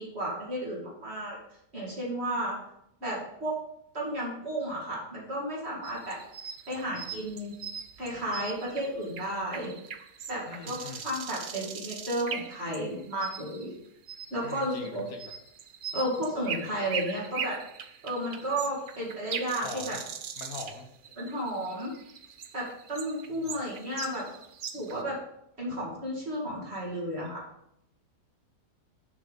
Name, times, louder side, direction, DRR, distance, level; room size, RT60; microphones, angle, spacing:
voice 1, 0.0-1.4 1.7-2.6 3.0-3.6 3.9-6.2 6.7-7.6 8.0-9.7 10.3-13.7 14.3-15.0 15.9-17.6 18.0-20.0 21.2-21.9 22.5-24.2 24.7-25.2 25.6-27.4, right 1 dB, 45° right, -5 dB, 2.4 m, -33 dB
sound 1, 5.8-13.6 14.1-25.0, right 7 dB, 70° right, 0.4 m, -40 dB
voice 2, 10.5-11.0 14.4-15.3 19.6-20.0 20.4-20.8 23.3-23.5, left 4 dB, 65° left, 4 dB, 1.6 m, -42 dB
6.7 x 5.7 x 5.1 m, 0.77 s
omnidirectional pair, 1.6 m